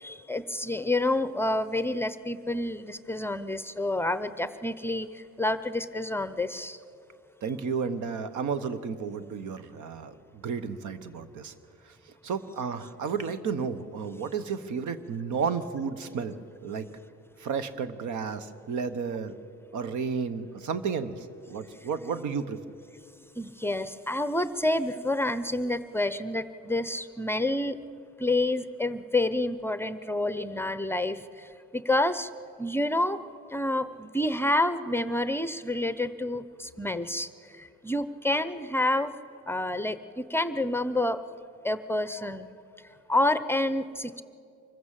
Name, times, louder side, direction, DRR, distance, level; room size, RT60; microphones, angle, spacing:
voice 1, 0.0-6.8 23.4-27.8 28.2-32.3 32.6-33.2 33.5-37.3 37.6-39.1 39.5-41.2 41.6-42.5 43.1-44.2, left 1 dB, 10° left, 13 dB, 0.7 m, -28 dB
voice 2, 7.4-11.5 11.8-12.0 12.2-16.9 17.4-19.3 19.7-22.6, right 6 dB, 75° right, 13 dB, 1.1 m, -32 dB
24.5 x 15.0 x 7.5 m, 2.5 s
cardioid pair, 90°, 30 cm